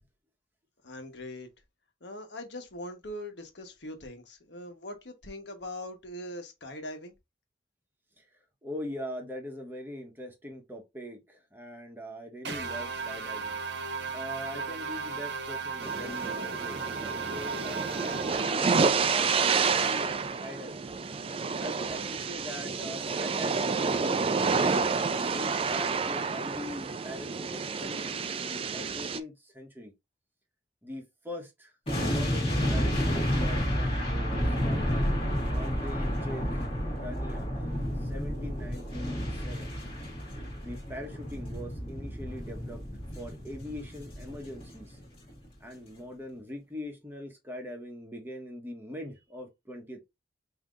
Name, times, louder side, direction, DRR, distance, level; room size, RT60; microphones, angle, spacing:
voice 1, 0.8-1.5 2.0-7.1, left 1 dB, 75° left, 1.2 m, -41 dB
voice 2, 8.6-13.6 14.1-20.9 21.6-24.8 25.3-29.9 30.8-34.9 35.5-36.6 36.9-39.8 40.6-42.8 43.2-45.0 45.6-50.0, left 1 dB, 10° right, 1.1 m, -42 dB
sound 1, 12.4-18.9, right 5 dB, 75° right, 0.9 m, -36 dB
sound 2, 15.8-29.2, right 5 dB, 30° right, 0.4 m, -29 dB
sound 3, 31.9-45.0 45.3-45.5, equal, 35° left, 1.7 m, -31 dB
5.7 x 2.8 x 2.5 m
head